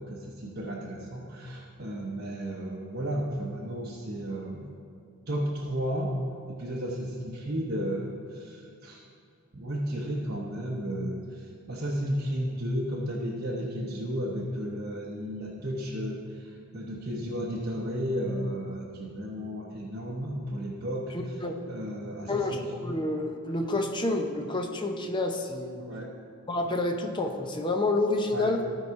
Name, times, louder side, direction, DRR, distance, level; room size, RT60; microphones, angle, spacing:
voice 1, 0.0-4.6 5.3-6.1 6.5-9.1 9.5-21.4 21.7-22.6 25.9-26.1 28.3-28.5, equal, 45° right, -5 dB, 0.9 m, -33 dB
voice 2, 21.1-21.6 22.3-25.8 26.5-28.6, left 2 dB, 20° left, 4 dB, 0.6 m, -29 dB
14.0 x 4.8 x 4.6 m, 2.3 s
head